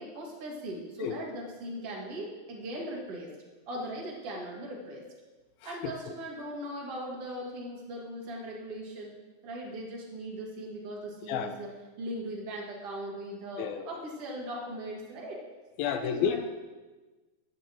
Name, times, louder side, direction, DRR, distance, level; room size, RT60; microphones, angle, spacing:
voice 1, 0.0-3.3 3.7-5.0 5.6-9.1 9.4-11.7 12.0-15.4 15.8-16.4, right 1 dB, 40° right, -3 dB, 3.0 m, -39 dB
voice 2, 13.6-13.9 15.8-16.4, left 8 dB, 80° left, 8 dB, 2.4 m, -30 dB
15.0 x 12.5 x 3.2 m, 1.2 s
omnidirectional pair, 4.7 m